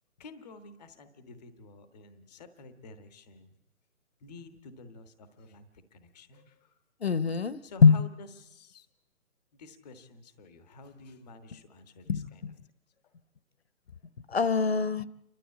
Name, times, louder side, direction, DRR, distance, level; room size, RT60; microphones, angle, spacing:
voice 1, 0.2-3.6 4.2-6.8 7.6-8.9 9.5-12.5 13.0-13.1, left 3 dB, 5° left, 9 dB, 0.7 m, -50 dB
voice 2, 7.0-8.0 12.1-12.5 14.3-15.0, left 5 dB, 45° left, 17 dB, 0.7 m, -23 dB
29.0 x 12.5 x 8.3 m, 0.89 s
hypercardioid pair, 160°, 45 cm